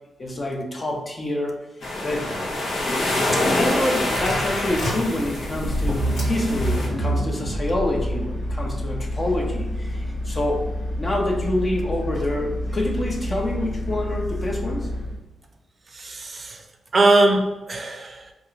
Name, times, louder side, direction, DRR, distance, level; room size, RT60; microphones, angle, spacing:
voice 1, 0.2-1.6 2.0-2.3 3.3-10.6 11.0-14.9, left 1 dB, 35° left, 0 dB, 0.8 m, -27 dB
sound 1, 1.8-6.9, left 1 dB, 70° left, 0.9 m, -26 dB
sound 2, 3.7-15.2, equal, 85° left, 1.4 m, -28 dB
voice 2, 15.9-16.6 16.9-18.3, right 2 dB, 45° right, 3 dB, 0.5 m, -21 dB
3.5 x 2.5 x 3.2 m, 1.1 s
cardioid pair, 75°, 0 cm